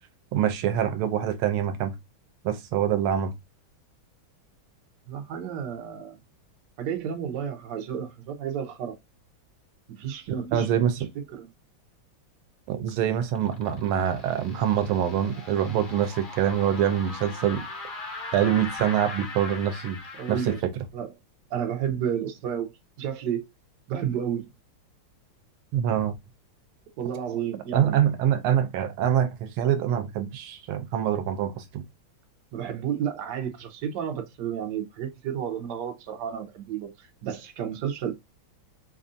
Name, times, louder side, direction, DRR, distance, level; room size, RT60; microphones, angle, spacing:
voice 1, 0.3-1.9 2.4-3.3 10.5-10.9 12.7-17.6 18.3-20.0 20.3-20.4 25.7-26.1 27.7-31.8, right 9 dB, 90° right, 1.5 m, -25 dB
voice 2, 5.1-6.2 6.8-8.9 9.9-10.7 11.3-11.5 20.2-20.6 20.9-21.1 21.5-22.7 23.0-23.5 23.9-24.5 27.0-28.0 32.5-38.1, right 8 dB, 60° right, 1.3 m, -31 dB
sound 1, 12.9-20.6, left 3 dB, 55° left, 0.5 m, -40 dB
5.4 x 2.5 x 2.5 m
omnidirectional pair, 2.3 m